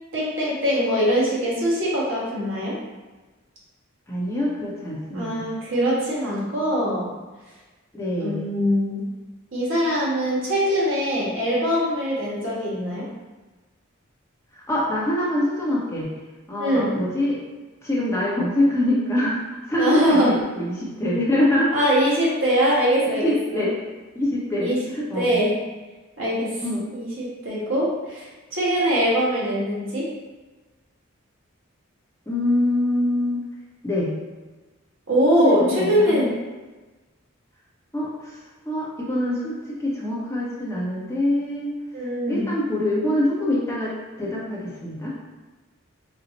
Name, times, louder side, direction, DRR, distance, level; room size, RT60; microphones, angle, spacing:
voice 1, 0.1-2.8 5.1-7.1 8.2-9.0 9.5-13.1 16.6-16.9 19.8-20.3 21.7-23.6 24.5-24.8 25.1-25.6 26.2-26.5 26.9-28.2 28.5-30.1 35.1-36.3 41.9-42.5, equal, 65° right, -6 dB, 1.3 m, -22 dB
voice 2, 4.1-5.5 7.9-8.4 14.5-16.1 16.5-17.4 17.8-21.7 23.0-23.8 24.1-25.4 26.6-26.9 32.3-33.4 33.8-34.1 35.4-36.3 37.9-38.4 38.6-39.5 39.8-41.7 42.3-45.1, left 1 dB, 15° left, -6 dB, 0.8 m, -24 dB
4.5 x 2.1 x 3.9 m, 1.2 s
head